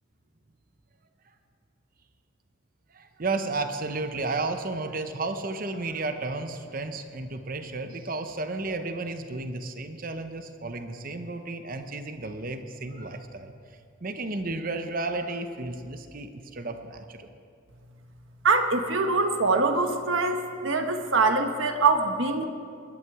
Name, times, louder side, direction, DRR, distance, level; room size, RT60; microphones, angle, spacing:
voice 1, 2.9-17.3, right 3 dB, 45° right, 7 dB, 0.9 m, -33 dB
voice 2, 18.4-22.5, right 3 dB, 70° right, 6 dB, 1.2 m, -23 dB
21.0 x 11.0 x 4.8 m, 2.4 s
head